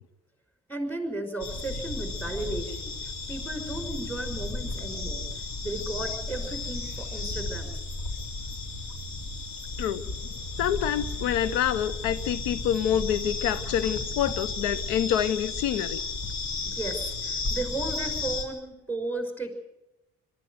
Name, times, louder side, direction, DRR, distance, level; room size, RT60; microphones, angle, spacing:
voice 1, 0.7-2.9 3.3-5.3 5.6-7.8 16.7-19.5, right 2 dB, 5° left, 6 dB, 5.9 m, -34 dB
sound 1, 1.4-18.4, left 3 dB, 60° left, 3.4 m, -34 dB
voice 2, 10.6-16.0, left 10 dB, 75° left, 15 dB, 0.8 m, -27 dB
22.5 x 13.5 x 9.4 m, 0.95 s
hypercardioid pair, 60°, 32 cm